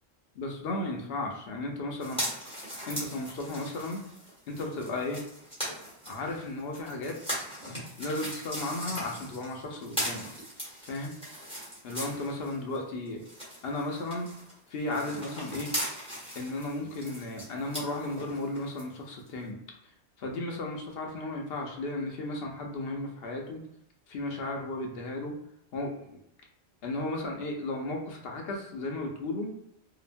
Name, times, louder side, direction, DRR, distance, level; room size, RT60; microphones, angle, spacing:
voice 1, 0.4-2.2 2.9-4.0 4.5-5.2 6.1-7.2 8.0-10.2 10.8-11.1 11.8-13.2 13.6-14.3 14.7-15.7 16.4-19.6 20.2-23.6 24.1-25.3 25.7-26.2 26.8-29.5, left 2 dB, 70° left, 1 dB, 0.8 m, -34 dB
sound 1, 2.0-12.8 13.0-18.8 19.3-19.4, equal, 5° left, 1.0 m, -39 dB
2.9 x 2.0 x 2.5 m, 0.78 s
omnidirectional pair, 1.1 m